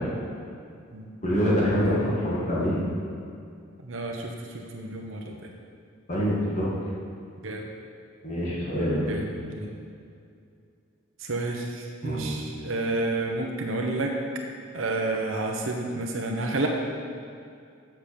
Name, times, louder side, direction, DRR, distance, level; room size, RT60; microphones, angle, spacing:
voice 1, 1.2-2.8 6.1-6.7 8.2-9.1 12.0-12.3, equal, 35° left, -7 dB, 2.0 m, -25 dB
voice 2, 3.8-5.5 7.4-7.6 9.1-9.7 11.2-14.1 14.7-16.7, right 2 dB, 75° right, 1 dB, 0.9 m, -30 dB
7.6 x 6.1 x 6.8 m, 2.4 s
head